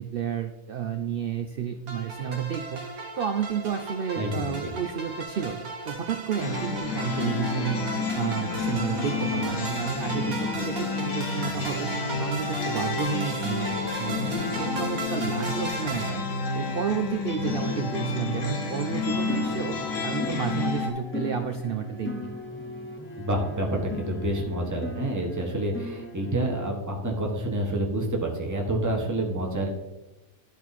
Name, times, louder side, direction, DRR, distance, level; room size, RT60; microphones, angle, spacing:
voice 1, 0.0-2.8 3.2-7.9 8.1-11.9 12.2-16.2 16.5-19.8 20.0-22.3, right 7 dB, 60° right, 7 dB, 0.6 m, -31 dB
sound 1, 1.9-16.1, right 2 dB, 85° right, 1.5 m, -36 dB
voice 2, 4.2-4.7 23.2-29.7, right 1 dB, 15° right, 0 dB, 1.3 m, -28 dB
sound 2, 6.4-20.9, left 4 dB, 65° left, 1.5 m, -30 dB
sound 3, 19.3-26.7, left 1 dB, 15° left, 0.6 m, -37 dB
12.0 x 4.5 x 4.1 m, 1.0 s
omnidirectional pair, 1.5 m